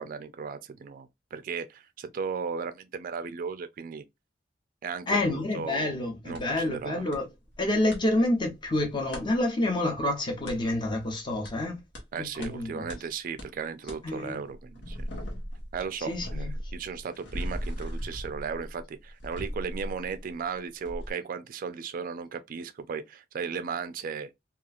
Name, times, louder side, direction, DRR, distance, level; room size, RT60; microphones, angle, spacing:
voice 1, 0.0-4.0 4.8-5.9 6.3-7.0 12.1-15.1 15.7-24.3, right 5 dB, 50° right, 0.3 m, -36 dB
voice 2, 5.1-7.2 7.6-11.8 12.2-12.9 14.0-14.4 16.0-16.5, left 1 dB, 25° left, 0.7 m, -28 dB
sound 1, 6.3-6.4 7.1-7.2 7.5-8.0 9.1-9.2 10.5-10.6 11.4-11.5 11.9-12.0 12.4-12.5 12.9-13.0 13.4-13.5 13.9-14.0 14.5-20.5 20.8-21.1, equal, 90° left, 1.0 m, -37 dB
2.9 x 2.3 x 2.3 m
head